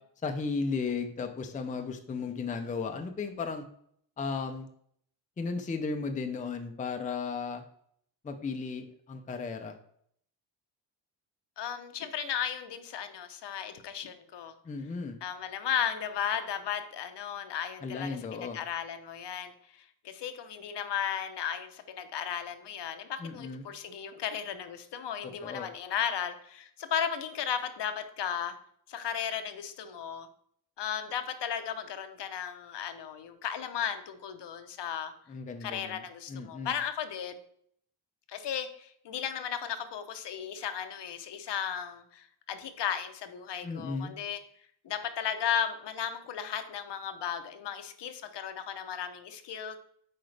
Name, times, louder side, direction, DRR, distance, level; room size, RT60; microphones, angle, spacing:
voice 1, 0.2-3.6 4.2-4.7 5.4-7.6 8.2-9.8 14.6-15.2 17.8-18.6 23.2-23.6 25.4-25.7 35.3-36.0 36.3-36.7 43.6-44.1, left 4 dB, 20° left, 6 dB, 0.4 m, -35 dB
voice 2, 11.6-14.5 15.2-28.6 28.9-30.3 30.8-35.1 35.6-37.4 38.3-44.4 44.8-49.8, left 8 dB, 65° left, 8 dB, 0.8 m, -35 dB
7.8 x 4.8 x 3.3 m, 0.65 s
wide cardioid pair, 175°, 44 cm